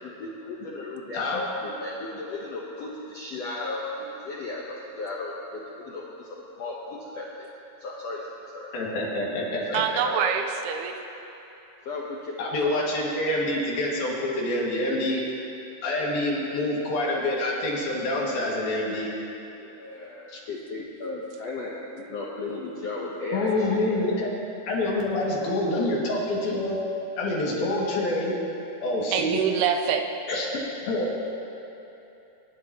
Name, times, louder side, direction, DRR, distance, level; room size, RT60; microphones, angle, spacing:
voice 1, 0.0-7.5 7.8-8.2 8.5-8.7 9.7-10.3 11.8-12.3 12.6-12.8 19.6-24.1, left 2 dB, 85° left, -4 dB, 1.4 m, -35 dB
voice 2, 8.7-9.8 12.4-15.2 15.8-19.2 23.3-24.3 24.7-26.8 27.2-28.3 28.8-29.4 30.3-30.5 30.8-31.2, left 1 dB, 70° left, -4 dB, 3.9 m, -26 dB
voice 3, 9.7-11.0 29.1-30.0, right 7 dB, 85° right, 5 dB, 2.8 m, -25 dB
25.0 x 11.5 x 3.0 m, 3.0 s
omnidirectional pair, 4.5 m